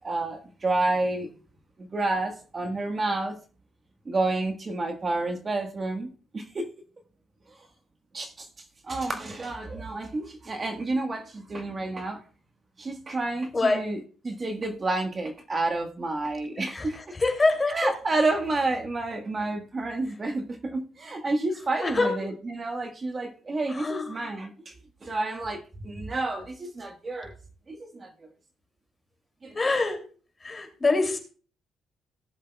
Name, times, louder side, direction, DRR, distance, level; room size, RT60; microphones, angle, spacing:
voice 1, 0.0-1.3 1.8-3.4 4.0-6.6 8.1-8.5 8.8-12.2 12.8-17.0 17.7-24.7 25.0-27.3 27.7-28.1 29.4-29.6, right 2 dB, 35° right, 5 dB, 1.4 m, -30 dB
voice 2, 13.5-13.8 16.7-16.9 17.2-17.9 21.8-22.1 23.7-24.2 29.5-30.0 30.4-31.2, left 3 dB, 25° left, 4 dB, 2.8 m, -24 dB
18.0 x 7.3 x 2.3 m, 0.39 s
cardioid pair, 90°, 0 cm